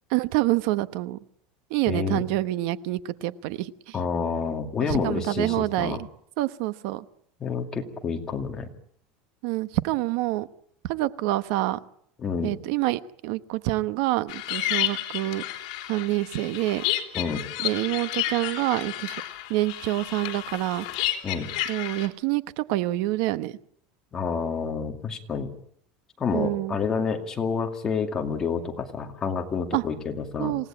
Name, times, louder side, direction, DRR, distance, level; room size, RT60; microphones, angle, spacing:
voice 1, 0.1-1.2 1.7-4.0 4.9-6.0 6.4-7.0 9.4-10.5 10.8-11.8 12.4-15.4 15.9-16.8 17.6-19.2 19.5-20.9 21.7-23.5 26.3-26.8 29.7-29.8 30.4-30.7, right 17 dB, 55° right, 14 dB, 1.1 m, -27 dB
voice 2, 1.9-2.2 3.9-6.0 7.4-8.7 12.2-12.5 17.1-17.4 21.2-21.5 24.1-25.5 26.2-30.5, left 5 dB, 15° left, 4 dB, 2.3 m, -28 dB
sound 1, 14.3-22.1, left 14 dB, 65° left, 3.3 m, -31 dB
27.5 x 17.5 x 8.9 m, 0.68 s
cardioid pair, 180°, 4 cm